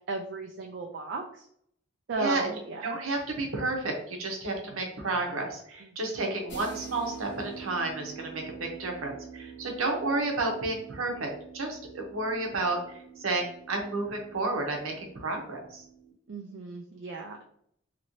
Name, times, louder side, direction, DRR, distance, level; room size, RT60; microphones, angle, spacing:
voice 1, 0.1-1.5 2.1-2.9 5.8-5.9 16.3-17.4, right 3 dB, 60° right, 2 dB, 0.4 m, -35 dB
voice 2, 2.8-11.3 11.5-15.8, right 2 dB, 85° right, 2 dB, 0.8 m, -31 dB
sound 1, 6.5-16.1, right 6 dB, 60° left, 0.9 m, -46 dB
2.9 x 2.7 x 3.0 m, 0.68 s
head